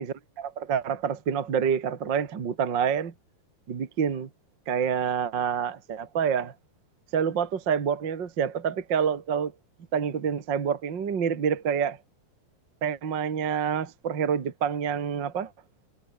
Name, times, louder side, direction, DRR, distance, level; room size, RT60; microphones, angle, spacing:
voice 1, 0.0-3.1 3.7-4.3 4.7-6.5 7.1-9.5 9.9-12.0 12.8-15.5, right 7 dB, 40° right, 1.9 m, -27 dB
omnidirectional pair, 4.9 m